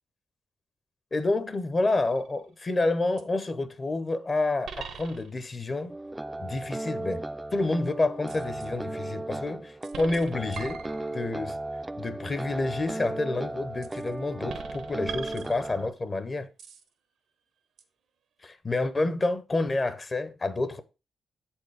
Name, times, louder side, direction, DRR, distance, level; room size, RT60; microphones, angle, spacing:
voice 1, 1.1-5.9 6.4-7.2 7.5-10.9 11.1-11.6 12.0-16.5 18.4-20.8, left 2 dB, 30° left, 0.7 m, -29 dB
sound 1, 2.1-2.5 3.2-3.3 4.6-5.6 8.3-8.7 9.8-11.4 13.8-14.1 14.5-16.0 16.6-16.9 17.8-17.9, right 7 dB, 80° right, 1.0 m, -42 dB
sound 2, 5.9-15.9, right 2 dB, 10° right, 0.4 m, -36 dB
8.0 x 4.5 x 4.7 m
cardioid pair, 125°, 0 cm